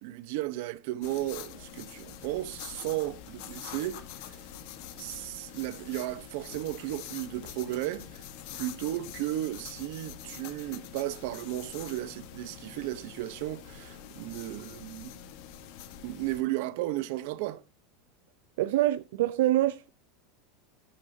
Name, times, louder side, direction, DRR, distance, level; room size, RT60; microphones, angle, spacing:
voice 1, 0.0-4.4 4.9-8.3 8.5-15.1 16.0-17.6, right 15 dB, 55° right, 1.0 m, -34 dB
sound 1, 1.0-16.4, left 10 dB, 55° left, 1.5 m, -45 dB
voice 2, 18.6-19.9, right 14 dB, 75° right, 0.6 m, -25 dB
12.5 x 9.8 x 2.8 m
supercardioid pair, 170°, 0 cm